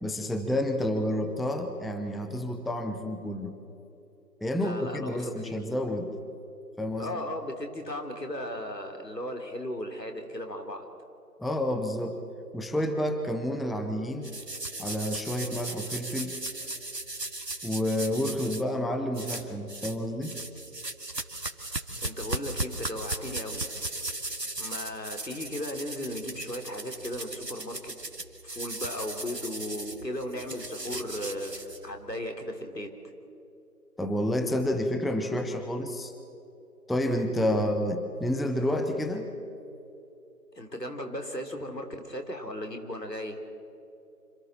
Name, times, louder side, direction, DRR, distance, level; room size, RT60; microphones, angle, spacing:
voice 1, 0.0-3.5 4.4-6.1 6.8-7.1 11.4-12.2 12.5-14.3 14.8-16.4 17.6-20.4 34.0-36.1 36.9-39.3, left 1 dB, ahead, 6 dB, 0.7 m, -29 dB
voice 2, 4.6-5.6 7.0-10.9 22.0-23.7 24.6-27.9 28.4-32.9 37.6-37.7 40.6-43.4, left 1 dB, 85° left, 4 dB, 3.4 m, -36 dB
sound 1, 14.2-18.6 19.1-20.0 20.2-32.1, right 2 dB, 85° right, 2.1 m, -37 dB
26.5 x 26.0 x 4.3 m, 2.9 s
figure-of-eight pair, 175°, 48 cm